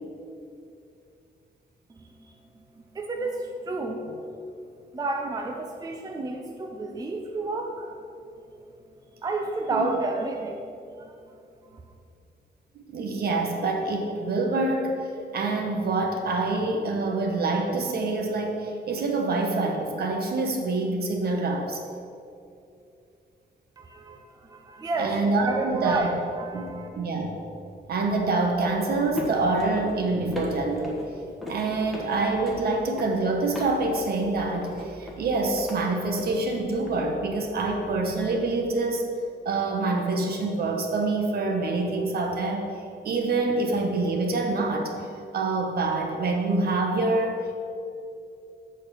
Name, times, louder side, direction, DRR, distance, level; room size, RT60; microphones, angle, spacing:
voice 1, 2.9-4.0 4.9-7.9 9.2-10.6 11.0-11.2 23.8-26.9, right 3 dB, 20° right, 2 dB, 0.5 m, -30 dB
voice 2, 12.9-21.8 25.0-26.0 26.5-27.3 27.9-31.1 31.5-39.1 39.4-42.7 43.0-45.1 45.3-47.5, right 3 dB, 65° right, 2 dB, 1.1 m, -26 dB
sound 1, 27.6-38.6, equal, ahead, 1.1 m, -40 dB
7.7 x 4.5 x 6.7 m, 2.6 s
wide cardioid pair, 180°, 18 cm